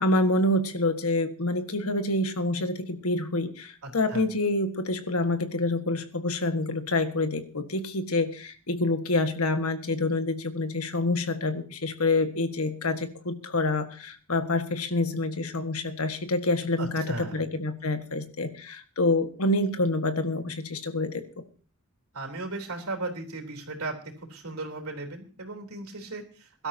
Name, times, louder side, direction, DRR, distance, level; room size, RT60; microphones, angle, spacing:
voice 1, 0.0-21.2, left 2 dB, 80° left, 8 dB, 1.7 m, -27 dB
voice 2, 3.8-4.2 16.8-17.4 22.1-26.7, right 3 dB, 80° right, 2 dB, 3.7 m, -36 dB
22.5 x 12.5 x 2.9 m, 0.39 s
head